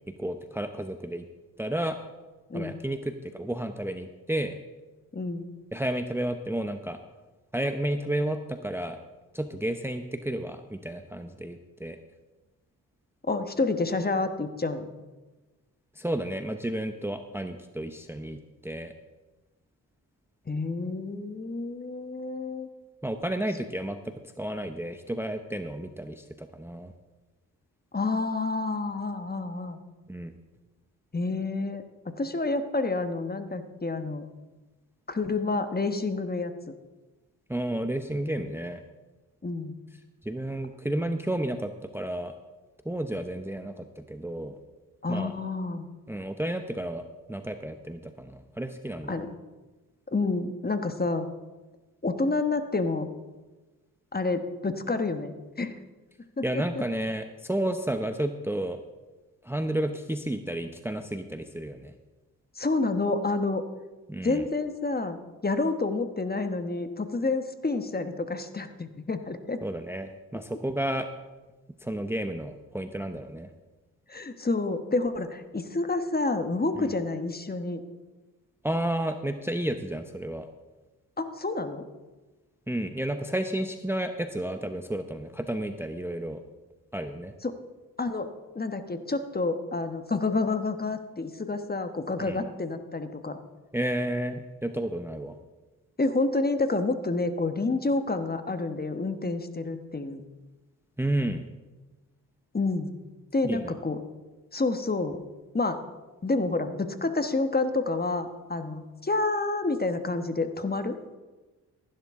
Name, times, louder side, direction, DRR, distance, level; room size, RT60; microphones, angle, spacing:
voice 1, 0.2-1.2 1.6-2.0 2.5-4.6 5.7-7.0 7.5-9.0 9.3-12.0 16.0-18.9 23.0-26.9 30.1-30.3 37.5-38.8 40.2-42.3 42.8-44.6 45.1-45.3 46.1-49.2 56.4-58.8 59.4-61.9 64.1-64.4 69.6-71.1 71.8-73.5 76.8-76.9 78.6-80.5 82.7-86.4 86.9-87.3 92.2-92.4 93.7-95.4 101.0-101.5 103.4-103.7, right 1 dB, 5° right, 8 dB, 0.8 m, -31 dB
voice 2, 5.1-5.5 13.3-14.9 20.5-22.7 27.9-29.8 31.1-34.2 35.1-36.5 39.4-39.7 45.0-45.9 49.1-49.3 50.1-51.3 52.0-53.1 54.1-55.7 56.4-56.6 62.6-63.6 64.2-69.6 74.1-77.8 81.2-81.9 87.4-87.6 88.0-88.3 88.5-93.4 96.0-100.2 102.5-102.9 103.3-104.0 104.5-105.2 105.5-105.8 106.2-111.0, left 3 dB, 25° left, 8 dB, 1.2 m, -29 dB
15.0 x 11.5 x 3.7 m, 1.2 s
supercardioid pair, 50°, 37 cm